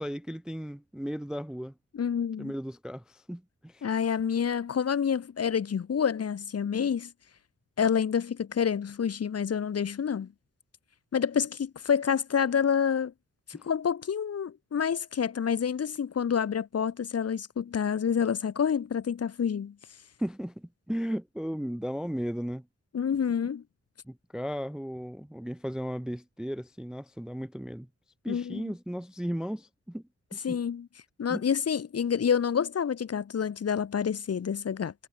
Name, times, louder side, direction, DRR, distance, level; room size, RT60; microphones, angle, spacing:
voice 1, 0.0-1.7 2.4-3.9 13.5-13.6 20.2-22.7 24.1-27.9 28.2-30.0 30.3-30.6 31.3-31.4, equal, ahead, 0.4 m, -35 dB
voice 2, 1.9-2.5 3.8-7.1 7.8-10.3 11.1-13.1 13.5-19.7 22.9-23.6 28.3-28.7 30.4-30.9 31.2-34.9, left 7 dB, 55° left, 0.9 m, -28 dB
wide cardioid pair, 145°, 30 cm